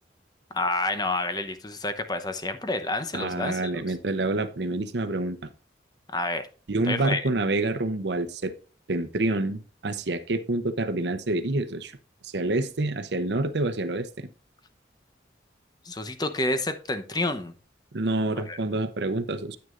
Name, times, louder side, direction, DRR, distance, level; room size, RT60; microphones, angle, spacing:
voice 1, 0.5-3.7 6.1-6.5 6.9-7.2 15.8-17.5 18.4-18.6, left 2 dB, 20° left, 0.8 m, -29 dB
voice 2, 3.1-5.4 6.7-8.5 8.9-11.9 12.2-14.1 17.9-19.6, right 2 dB, 70° right, 0.8 m, -27 dB
9.5 x 8.9 x 2.5 m
head